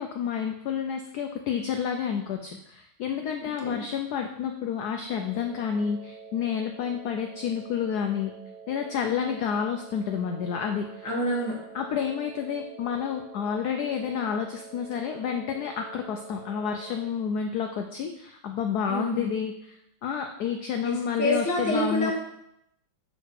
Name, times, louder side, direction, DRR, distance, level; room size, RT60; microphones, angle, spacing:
voice 1, 0.0-8.3 8.7-11.0 11.7-22.1, left 7 dB, 85° left, 4 dB, 0.8 m, -30 dB
sound 1, 5.1-17.1, right 6 dB, 85° right, 1.7 m, -46 dB
voice 2, 11.0-11.6 18.9-19.3 20.8-22.1, equal, 15° left, -2 dB, 0.8 m, -27 dB
6.5 x 3.9 x 4.6 m, 0.79 s
omnidirectional pair, 2.3 m